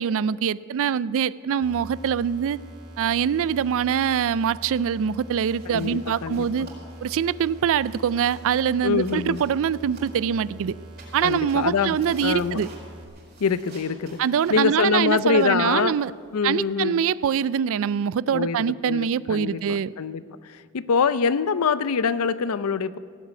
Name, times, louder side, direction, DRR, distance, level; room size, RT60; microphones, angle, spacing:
voice 1, 0.0-2.6 3.0-6.7 7.0-10.7 11.1-12.7 14.2-16.1 16.4-19.9, right 8 dB, 65° right, 20 dB, 0.3 m, -24 dB
sound 1, 1.6-13.0, right 1 dB, 90° right, 2.2 m, -43 dB
sound 2, 3.9-4.3 4.6-4.9 5.3-10.4 10.8-16.7, right 2 dB, 45° right, 4.7 m, -50 dB
voice 2, 5.7-6.5 8.8-9.4 11.2-12.0 12.2-12.7 13.4-14.2 14.5-15.9 16.3-17.0 18.3-23.0, left 5 dB, 70° left, 16 dB, 0.5 m, -24 dB
17.0 x 8.2 x 9.3 m, 2.1 s
head